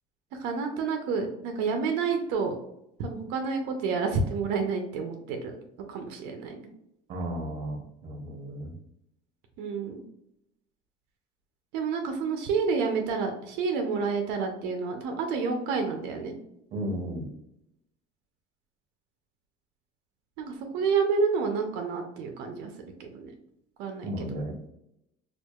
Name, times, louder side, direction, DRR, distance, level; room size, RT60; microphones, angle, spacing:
voice 1, 0.3-2.6 3.0-5.6 5.9-6.6 9.6-10.0 11.7-16.4 20.4-23.3 23.8-24.1, right 5 dB, 70° right, 4 dB, 0.5 m, -29 dB
voice 2, 7.1-8.8 16.7-17.3 24.0-24.5, right 1 dB, 35° right, 3 dB, 0.7 m, -34 dB
4.4 x 2.4 x 2.3 m, 0.79 s
cardioid pair, 165°, 18 cm